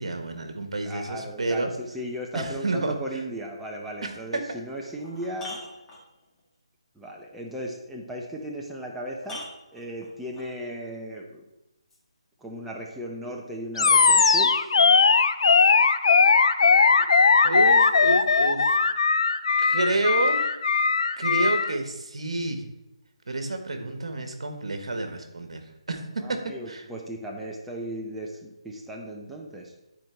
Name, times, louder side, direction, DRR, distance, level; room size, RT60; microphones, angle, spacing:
voice 1, 0.0-1.7 2.3-2.9 4.0-4.1 17.4-18.8 19.6-20.5 21.2-22.6 23.3-25.6 25.9-26.0 26.3-26.4 26.7-26.8, right 2 dB, 70° right, 6 dB, 1.5 m, -29 dB
voice 2, 0.8-5.6 7.0-9.5 9.7-11.4 12.4-14.5 26.2-29.7, equal, 5° right, -2 dB, 0.8 m, -36 dB
sound 1, 4.3-4.4 4.9-6.4 8.4-8.5 9.2-10.5 11.9-12.0, left 1 dB, 10° left, 2.0 m, -42 dB
Animal, 13.8-21.7, left 4 dB, 60° left, 0.5 m, -19 dB
11.5 x 4.6 x 4.5 m, 0.95 s
figure-of-eight pair, 155°, 3 cm